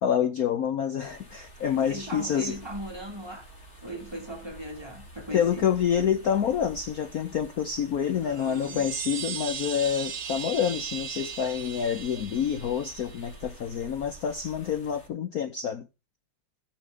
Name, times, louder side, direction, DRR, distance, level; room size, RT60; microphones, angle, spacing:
voice 1, 0.0-2.6 5.3-15.9, left 8 dB, 60° left, 1.1 m, -27 dB
sound 1, 1.0-15.1, right 1 dB, 35° left, 3.7 m, -49 dB
voice 2, 1.7-3.5 3.8-5.7 8.2-8.9, equal, 15° right, 2.0 m, -39 dB
sound 2, 8.3-13.4, right 8 dB, 60° right, 2.0 m, -37 dB
17.0 x 6.7 x 3.7 m
omnidirectional pair, 2.2 m